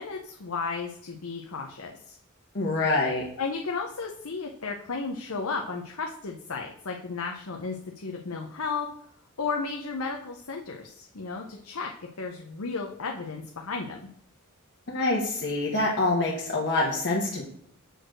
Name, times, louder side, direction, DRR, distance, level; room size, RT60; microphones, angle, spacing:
voice 1, 0.0-2.2 3.4-8.9 9.4-14.0, left 4 dB, 80° left, 1 dB, 0.8 m, -34 dB
voice 2, 2.5-3.2 14.9-17.4, left 2 dB, 55° left, -4 dB, 1.4 m, -26 dB
6.5 x 4.5 x 6.3 m, 0.66 s
head